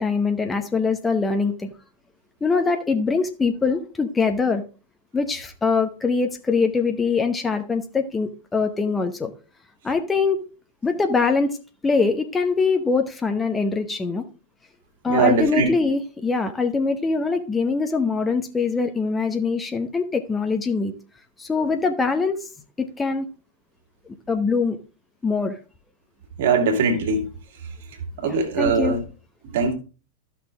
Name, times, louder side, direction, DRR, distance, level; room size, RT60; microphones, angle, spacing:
voice 1, 0.0-1.7 2.4-4.6 5.1-9.3 9.8-10.4 10.8-11.6 11.8-14.2 15.0-20.9 21.4-22.5 22.8-23.3 24.3-24.8 25.2-25.6 28.2-29.0, left 4 dB, 15° left, 1.0 m, -23 dB
voice 2, 15.1-15.7 26.4-27.3 28.2-29.0 29.5-29.7, right 4 dB, 55° right, 2.3 m, -21 dB
13.5 x 5.9 x 3.6 m
figure-of-eight pair, 90°, 0 cm